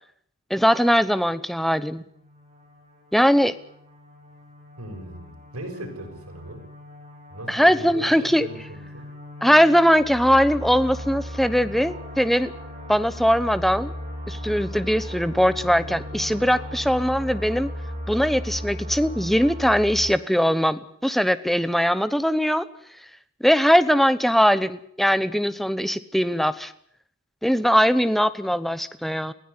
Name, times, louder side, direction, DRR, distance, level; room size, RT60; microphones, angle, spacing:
voice 1, 0.5-2.0 3.1-3.5 7.5-8.5 9.4-12.5 12.9-13.9 14.3-17.7 18.1-22.6 23.4-26.7 27.4-29.3, equal, ahead, 13 dB, 0.9 m, -20 dB
sound 1, 2.0-20.1, equal, 30° right, 7.4 m, -37 dB
voice 2, 4.8-6.7 7.3-9.1, right 1 dB, 90° right, 3 dB, 6.8 m, -38 dB
20.5 x 16.5 x 9.7 m, 0.66 s
head